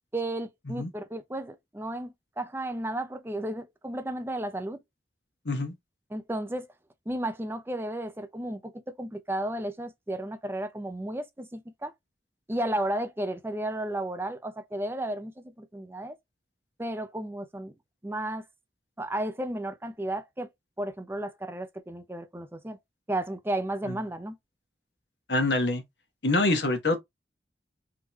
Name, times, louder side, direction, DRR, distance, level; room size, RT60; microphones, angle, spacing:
voice 1, 0.1-4.8 6.1-6.7 7.1-11.9 12.5-16.1 16.8-17.7 18.0-18.4 19.0-20.5 20.8-22.8 23.1-24.4, right 1 dB, 15° right, 0.6 m, -33 dB
voice 2, 25.3-25.8 26.2-27.0, left 2 dB, 75° left, 1.3 m, -25 dB
3.7 x 3.1 x 3.0 m
head